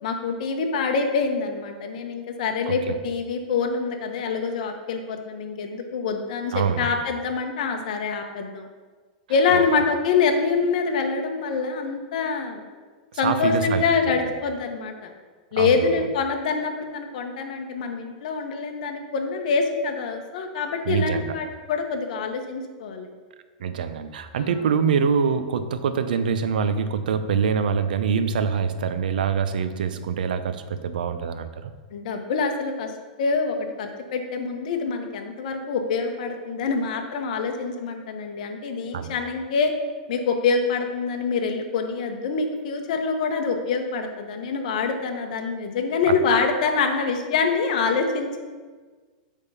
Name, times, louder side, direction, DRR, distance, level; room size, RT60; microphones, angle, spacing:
voice 1, 0.0-8.7 9.3-12.6 13.2-15.1 15.5-23.1 24.3-24.5 31.9-32.9 33.2-39.7 40.1-48.5, left 4 dB, 60° left, 4 dB, 1.0 m, -25 dB
voice 2, 2.7-3.0 6.5-6.9 9.5-9.6 13.2-13.9 15.6-15.8 20.9-21.4 23.6-31.7 38.9-39.1 46.1-46.2, right 6 dB, 90° right, 10 dB, 0.6 m, -24 dB
8.3 x 3.6 x 5.6 m, 1.4 s
supercardioid pair, 160°, 5 cm